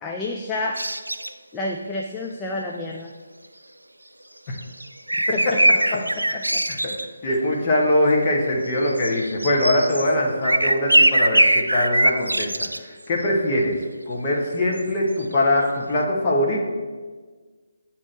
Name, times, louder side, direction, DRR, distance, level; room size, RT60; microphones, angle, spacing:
voice 1, 0.0-0.8 1.5-3.1 5.3-5.6 6.2-6.3 6.5-6.6, left 2 dB, 10° left, 0 dB, 0.4 m, -29 dB
sound 1, 0.8-1.3 4.6-7.1 8.8-10.1 10.4-12.8 14.8-14.9 15.2-15.4, right 1 dB, 80° right, 0.3 m, -21 dB
voice 2, 7.2-12.5 12.8-13.8 14.1-16.6, left 1 dB, 25° left, -2 dB, 1.2 m, -22 dB
8.6 x 3.0 x 6.1 m, 1.4 s
figure-of-eight pair, 145°, 0 cm